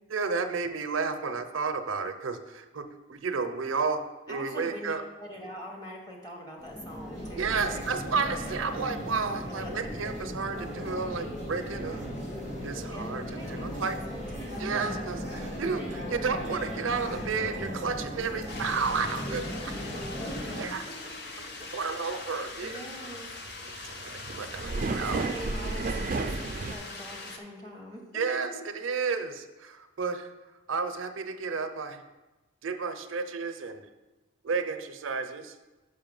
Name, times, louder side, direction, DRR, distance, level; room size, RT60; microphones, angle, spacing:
voice 1, 0.1-5.0 7.4-12.0 12.6-14.0 14.6-19.7 20.5-20.8 21.7-22.8 23.9-25.3 28.1-30.3 30.7-32.0 32.6-33.8 34.4-35.5, right 5 dB, 90° right, 8 dB, 0.5 m, -32 dB
voice 2, 4.3-4.9 5.2-7.8 12.9-14.8 20.2-20.7 22.6-23.3 24.8-28.0, equal, 20° left, -1 dB, 1.1 m, -43 dB
sound 1, 6.6-20.6, equal, 35° left, 1.7 m, -37 dB
sound 2, 13.7-13.8 14.3-14.4 14.8-14.9 15.4-15.5 15.9-16.0 16.5-16.6 17.0-17.1 17.5-17.6 18.1-18.2 18.6-18.7 19.2-19.3 19.7-19.8 20.3-20.4 20.8-20.9 21.3-21.6 21.9-22.0 22.3-26.8, right 3 dB, 40° right, 0.4 m, -34 dB
sound 3, 18.5-27.4, left 3 dB, 55° left, 0.7 m, -42 dB
5.6 x 5.5 x 5.3 m, 1.1 s
head